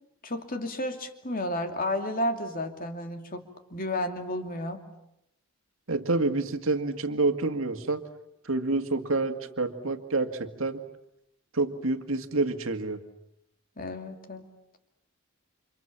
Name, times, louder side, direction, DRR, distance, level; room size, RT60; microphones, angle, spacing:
voice 1, 0.2-3.4 3.7-4.8 13.8-14.4, left 1 dB, 40° left, 6 dB, 2.7 m, -32 dB
voice 2, 5.9-8.0 8.5-10.8 11.5-13.0, right 3 dB, 65° right, 7 dB, 2.1 m, -28 dB
29.5 x 27.0 x 7.4 m, 0.81 s
head